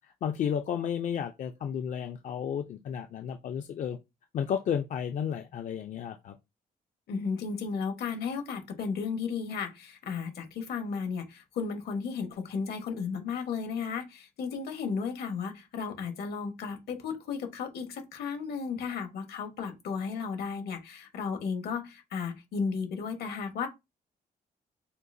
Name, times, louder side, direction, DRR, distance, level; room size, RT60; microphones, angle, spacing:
voice 1, 0.2-4.0 4.3-6.3, left 8 dB, 50° left, 0.4 m, -32 dB
voice 2, 7.1-23.7, left 5 dB, 75° left, 1.2 m, -34 dB
6.5 x 2.4 x 2.6 m
cardioid pair, 165°, 16 cm